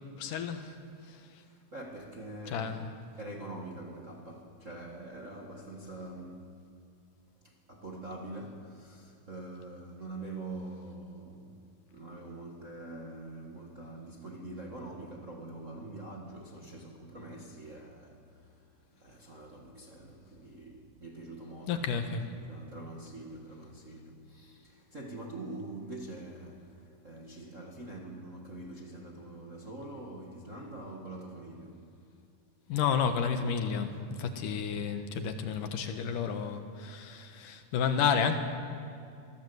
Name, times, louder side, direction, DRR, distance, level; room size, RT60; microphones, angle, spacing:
voice 1, 0.2-0.7 1.1-1.2 2.5-2.9 21.7-22.3 32.7-38.4, left 6 dB, 65° left, 2.5 m, -31 dB
voice 2, 1.5-2.8 3.2-6.5 7.4-31.9 34.4-34.6, right 2 dB, 45° right, 0.9 m, -45 dB
24.0 x 17.0 x 8.0 m
omnidirectional pair, 4.6 m